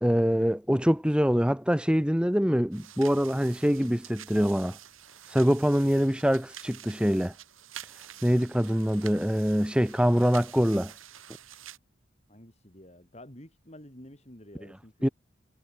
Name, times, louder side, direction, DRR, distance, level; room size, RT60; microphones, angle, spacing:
voice 1, 0.0-4.8 5.3-7.3 8.2-10.9 15.0-15.1, equal, 5° right, 1.1 m, -24 dB
sound 1, 2.7-11.8, right 11 dB, 90° right, 4.2 m, -48 dB
voice 2, 12.3-15.1, left 1 dB, 30° left, 4.2 m, -50 dB
head